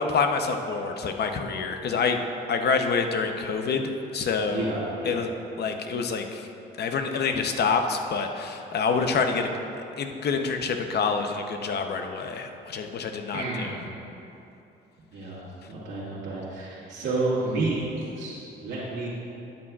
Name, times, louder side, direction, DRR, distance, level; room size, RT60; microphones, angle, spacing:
voice 1, 0.0-2.2 2.5-4.7 5.0-5.3 5.6-6.5 6.8-9.5 10.0-13.7, left 5 dB, 55° left, 5 dB, 0.8 m, -27 dB
voice 2, 4.5-5.2 13.3-13.9 15.1-19.1, right 2 dB, 75° right, -9 dB, 1.9 m, -30 dB
12.0 x 8.7 x 2.4 m, 2.8 s
cardioid pair, 90°, 20 cm